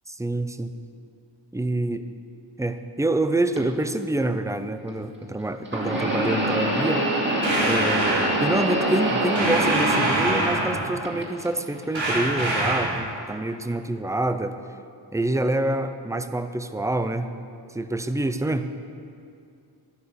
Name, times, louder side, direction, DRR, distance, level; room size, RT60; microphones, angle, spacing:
voice 1, 0.1-0.7 1.5-2.1 2.6-7.0 7.6-14.6 15.1-17.3 17.7-18.7, right 2 dB, 5° right, 10 dB, 0.5 m, -26 dB
sound 1, 3.6-3.7 5.7-10.7 11.0-11.8 12.6-12.7 13.7-13.8, right 1 dB, 25° right, 2.7 m, -25 dB
sound 2, 7.4-8.3 9.4-10.9 11.9-13.0, right 2 dB, 75° right, 3.8 m, -25 dB
12.5 x 9.7 x 6.8 m, 2.5 s
wide cardioid pair, 100°, 47 cm